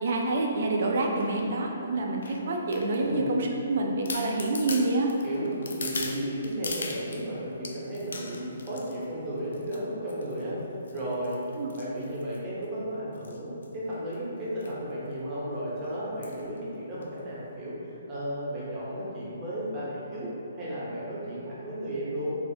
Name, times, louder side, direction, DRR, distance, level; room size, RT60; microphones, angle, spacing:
voice 1, 0.0-5.1 11.6-11.7, right 2 dB, 60° right, 1 dB, 0.4 m, -27 dB
sound 1, 1.2-1.5 2.2-3.3 3.7-3.8 4.1-7.2 7.6-9.0 9.5-9.8 10.1-10.4 10.9-12.6 13.1-13.4 13.6-13.7 13.9-14.1 14.6-14.8 15.1-15.2 16.2-16.5 17.0-17.1, left 3 dB, 75° left, 0.3 m, -39 dB
voice 2, 3.0-3.4 5.2-10.6 10.9-17.7 18.1-22.4, right 1 dB, 20° right, -9 dB, 0.9 m, -34 dB
3.3 x 2.6 x 2.7 m, 2.8 s
hypercardioid pair, 155°, 0 cm